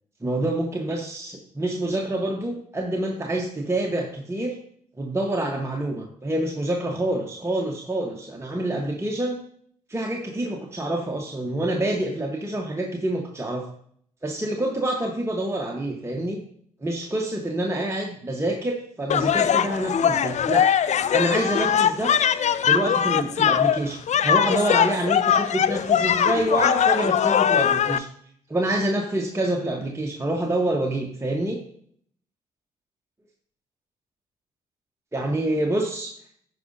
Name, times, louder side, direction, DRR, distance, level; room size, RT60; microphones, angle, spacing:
voice 1, 0.2-4.6 5.0-9.4 9.9-13.7 14.2-16.4 16.8-20.7 21.1-22.2 22.6-28.1 28.5-31.6 35.1-36.1, right 1 dB, 15° right, 0 dB, 1.2 m, -27 dB
sound 1, 19.1-28.0, left 8 dB, 40° left, 0.5 m, -21 dB
14.5 x 4.9 x 2.7 m, 0.63 s
hypercardioid pair, 45°, 18 cm